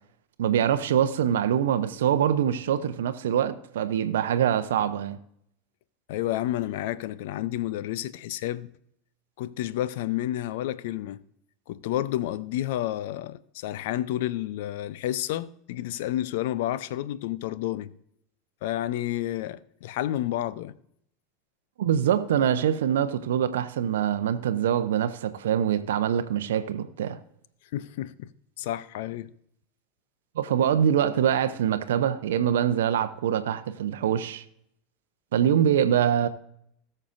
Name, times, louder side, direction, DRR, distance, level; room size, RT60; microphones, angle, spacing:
voice 1, 0.4-5.2 21.8-27.2 30.4-34.4 35.3-36.3, right 9 dB, 75° right, 0.6 m, -24 dB
voice 2, 6.1-8.7 9.4-11.2 11.7-17.9 18.6-20.8 27.7-28.3 28.6-29.3, left 13 dB, 65° left, 0.5 m, -30 dB
18.5 x 6.6 x 2.5 m
hypercardioid pair, 85°, 0 cm